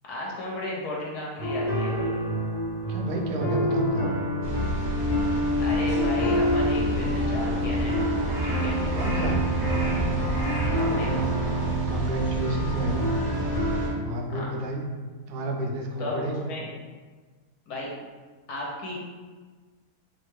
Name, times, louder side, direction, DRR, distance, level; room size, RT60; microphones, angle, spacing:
voice 1, 0.1-2.1 5.6-8.1 8.4-8.8 10.7-11.3 14.3-14.5 16.0-16.7 17.7-17.9 18.5-19.0, left 2 dB, 80° left, -3 dB, 1.2 m, -34 dB
sound 1, 1.4-13.9, equal, 50° left, 0.6 m, -27 dB
voice 2, 2.9-4.1 8.9-9.4 11.9-13.1 14.0-14.8 15.3-16.4, right 2 dB, 85° right, 0 dB, 1.1 m, -31 dB
sound 2, 4.4-13.9, equal, 40° right, 0.6 m, -31 dB
Crow, 6.2-11.7, right 1 dB, 65° right, 1.3 m, -37 dB
3.3 x 2.2 x 3.0 m, 1.4 s
omnidirectional pair, 1.7 m